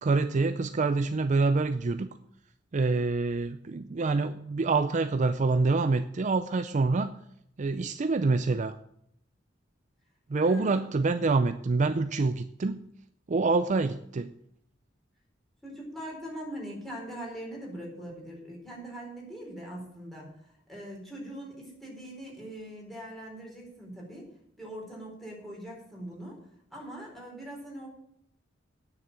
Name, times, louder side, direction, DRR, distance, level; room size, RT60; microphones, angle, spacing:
voice 1, 0.0-2.1 2.7-7.1 7.6-8.8 10.3-12.8 13.3-14.3, right 3 dB, 40° right, 10 dB, 0.4 m, -26 dB
voice 2, 10.4-10.8 15.6-20.3 20.7-24.3 24.6-26.4 26.7-27.9, right 1 dB, ahead, -3 dB, 4.2 m, -41 dB
9.5 x 6.7 x 8.8 m, 0.74 s
head